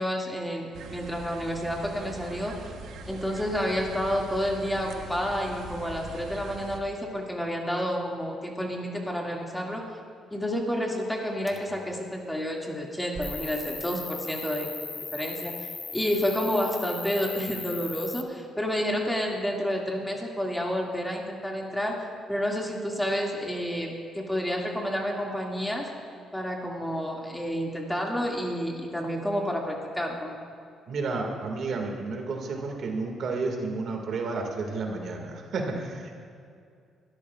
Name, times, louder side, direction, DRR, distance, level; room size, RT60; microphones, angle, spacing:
voice 1, 0.0-2.7 3.1-9.8 10.3-14.7 15.0-15.5 15.9-22.0 22.3-25.9 26.3-30.4, equal, 5° left, -1 dB, 2.0 m, -30 dB
sound 1, 0.7-6.8, right 3 dB, 80° right, 1.0 m, -42 dB
sound 2, 11.5-12.4 13.1-14.1 16.7-17.3 17.6-17.7 18.0-18.1, right 3 dB, 25° right, 1.3 m, -45 dB
Cricket, 13.2-18.2, left 4 dB, 35° left, 0.6 m, -38 dB
voice 2, 30.9-36.1, right 3 dB, 65° right, 2 dB, 1.9 m, -31 dB
24.0 x 13.5 x 2.4 m, 2.3 s
cardioid pair, 90°, 0 cm